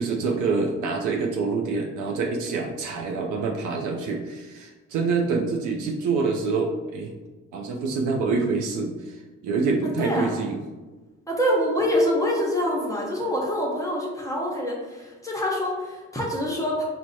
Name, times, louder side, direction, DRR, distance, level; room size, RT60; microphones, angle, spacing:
voice 1, 0.0-7.1 7.5-10.6, right 4 dB, 80° right, 1 dB, 0.5 m, -26 dB
voice 2, 10.0-10.3 11.3-16.8, equal, 10° left, -3 dB, 0.7 m, -25 dB
4.5 x 2.1 x 2.6 m, 1.2 s
cardioid pair, 90°, 30 cm